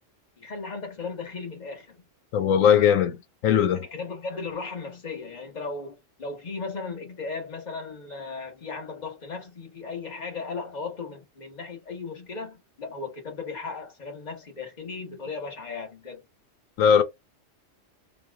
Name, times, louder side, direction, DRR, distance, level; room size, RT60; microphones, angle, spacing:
voice 1, 0.4-2.1 3.8-16.2, left 4 dB, 35° left, 1.3 m, -36 dB
voice 2, 2.3-3.2 3.4-3.8 16.8-17.0, left 8 dB, 90° left, 1.1 m, -19 dB
4.1 x 2.4 x 3.5 m
omnidirectional pair, 1.3 m